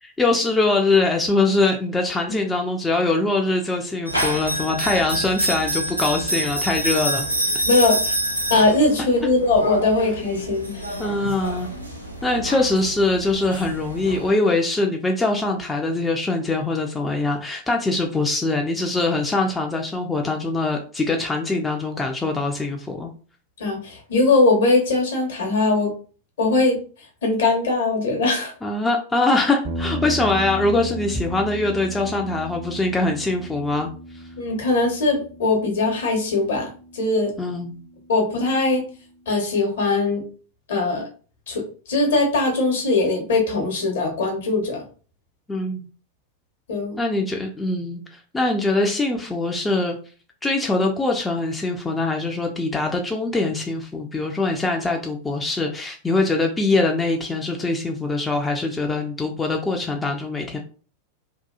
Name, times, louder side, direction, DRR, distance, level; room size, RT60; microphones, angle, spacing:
voice 1, 0.0-7.3 7.5-7.6 11.0-11.7 12.2-23.1 28.6-34.2 37.4-37.8 45.5-45.8 47.0-50.0 50.4-60.6, left 2 dB, 10° left, 1 dB, 0.4 m, -23 dB
sound 1, 4.1-14.3, right 1 dB, 90° right, 0.5 m, -27 dB
voice 2, 7.7-8.1 8.5-11.0 23.6-25.9 26.4-26.8 27.2-28.5 34.4-37.3 38.1-38.9 39.3-40.2 40.7-41.0 41.5-44.8 46.7-47.0, left 3 dB, 60° left, 1 dB, 1.0 m, -20 dB
sound 2, 29.6-38.0, equal, 35° right, 0.6 m, -35 dB
2.7 x 2.3 x 2.3 m, 0.39 s
figure-of-eight pair, 90°, 0 cm